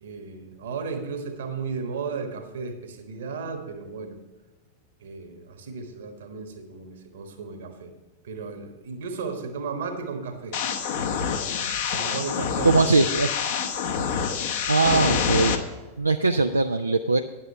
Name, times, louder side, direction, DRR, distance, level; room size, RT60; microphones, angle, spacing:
voice 1, 0.0-4.2 5.0-7.9 8.2-10.6 11.9-12.9, right 4 dB, 60° right, 6 dB, 1.4 m, -34 dB
sound 1, 10.5-15.6, left 7 dB, 55° left, 0.9 m, -26 dB
voice 2, 12.6-13.3 14.7-15.6 16.0-17.2, right 3 dB, 80° right, 6 dB, 0.4 m, -20 dB
9.9 x 7.5 x 5.6 m, 1.2 s
figure-of-eight pair, 90°, 0 cm